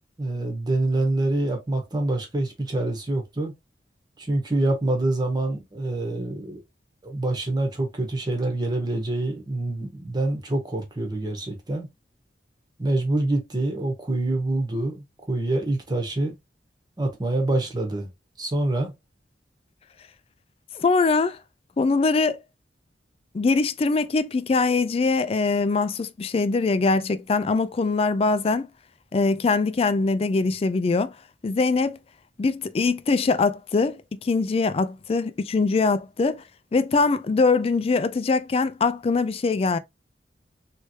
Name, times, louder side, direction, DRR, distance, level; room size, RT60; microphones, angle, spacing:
voice 1, 0.2-3.5 4.2-6.6 7.0-11.9 12.8-16.3 17.0-18.1 18.4-18.9, right 2 dB, 25° right, 1.1 m, -26 dB
voice 2, 20.7-21.4 21.8-22.4 23.3-28.7 29.1-31.1 31.4-32.0 32.4-36.4 36.7-39.8, left 4 dB, 35° left, 0.3 m, -22 dB
3.2 x 3.1 x 2.7 m
head